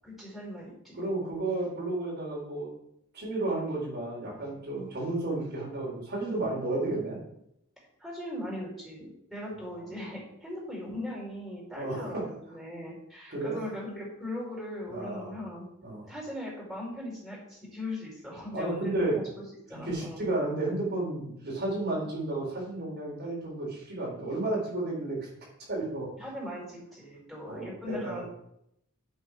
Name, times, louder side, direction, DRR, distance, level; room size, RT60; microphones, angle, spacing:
voice 1, 0.0-1.0 4.7-4.9 6.8-7.0 8.0-15.7 16.1-20.2 26.2-28.3, left 1 dB, ahead, -6 dB, 5.1 m, -39 dB
voice 2, 1.0-2.7 3.1-7.2 11.7-12.1 13.3-13.6 14.9-15.3 15.8-16.1 18.5-19.2 19.7-25.3 25.7-26.1 27.5-28.3, right 2 dB, 50° right, -4 dB, 4.1 m, -32 dB
10.0 x 8.1 x 4.9 m, 0.78 s
head